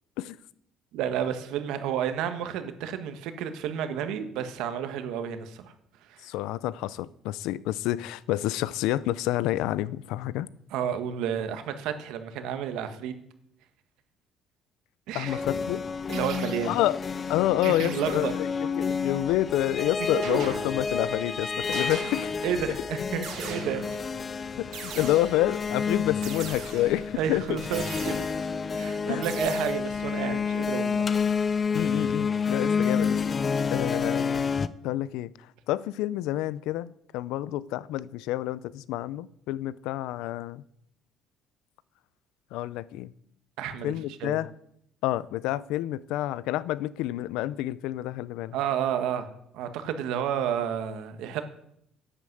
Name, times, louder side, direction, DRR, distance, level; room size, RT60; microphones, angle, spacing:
voice 1, 0.9-5.7 6.0-6.3 10.7-13.1 15.1-15.4 16.1-16.7 17.6-18.3 20.1-20.4 22.4-24.0 27.1-28.3 28.7-31.0 43.6-44.4 48.5-49.3 49.5-51.4, right 9 dB, 75° right, 1.4 m, -31 dB
voice 2, 6.2-10.5 15.1-15.9 16.6-17.0 17.3-18.5 18.8-22.5 24.6-27.6 29.1-29.3 31.7-33.2 33.7-34.5 34.8-35.3 35.7-40.6 42.5-43.1 43.8-44.5 45.0-48.5, left 15 dB, 85° left, 0.5 m, -28 dB
sound 1, 15.3-34.7, left 5 dB, 20° left, 0.4 m, -29 dB
sound 2, 16.1-16.9 17.6-18.4 20.2-21.1 21.7-22.6 23.2-24.1 24.7-25.6 26.2-27.1 27.7-28.6 29.2-29.7, right 7 dB, 55° right, 2.4 m, -40 dB
11.5 x 8.7 x 7.8 m
cardioid pair, 180°, 0 cm